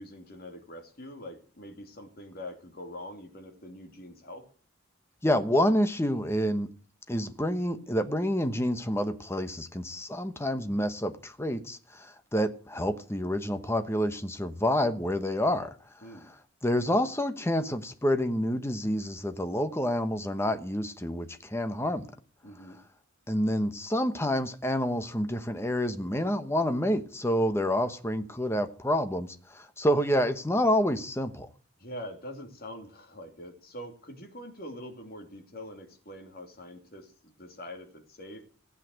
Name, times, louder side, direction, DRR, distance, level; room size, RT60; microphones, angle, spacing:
voice 1, 0.0-4.5 16.0-16.3 22.4-22.8 31.8-38.4, left 1 dB, 45° left, 2.8 m, -44 dB
voice 2, 5.2-6.7 7.1-15.7 16.6-22.1 23.3-31.5, equal, 10° left, 1.0 m, -28 dB
15.5 x 8.5 x 7.7 m
head